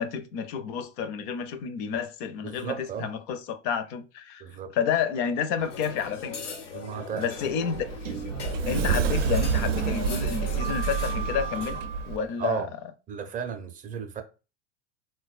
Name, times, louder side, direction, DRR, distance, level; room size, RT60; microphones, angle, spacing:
voice 1, 0.0-4.4 4.7-6.4 7.2-7.9 8.6-11.8 12.1-12.7, left 7 dB, 50° left, 0.6 m, -30 dB
voice 2, 2.4-3.1 4.4-4.7 6.7-7.3 12.4-12.7 13.1-14.2, right 7 dB, 25° right, 0.5 m, -34 dB
sound 1, 5.6-11.8, left 5 dB, 90° left, 0.9 m, -40 dB
Sliding door, 7.4-12.2, right 6 dB, 90° right, 0.5 m, -28 dB
3.9 x 2.2 x 2.4 m
hypercardioid pair, 100°, 36 cm